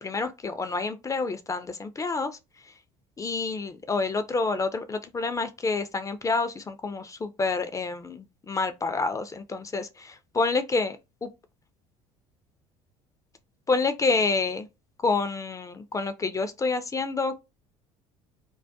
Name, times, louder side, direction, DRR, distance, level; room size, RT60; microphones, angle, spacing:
voice 1, 0.0-2.7 3.2-11.3 13.7-14.7 15.0-17.3, left 3 dB, 20° left, 0.3 m, -28 dB
2.3 x 2.1 x 2.6 m
hypercardioid pair, 65°, 18 cm